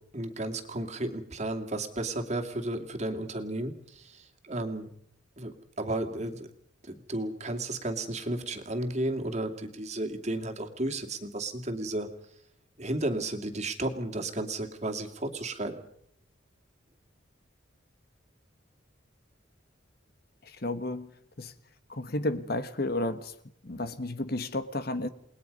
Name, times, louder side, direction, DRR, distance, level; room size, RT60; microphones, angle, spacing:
voice 1, 0.1-4.9 5.4-6.5 6.8-12.1 12.8-15.8, right 1 dB, 35° right, 5 dB, 2.5 m, -33 dB
voice 2, 20.4-21.1 21.4-21.5 21.9-23.3 23.6-25.1, left 2 dB, 50° left, 11 dB, 1.5 m, -32 dB
29.5 x 20.0 x 5.4 m, 0.67 s
head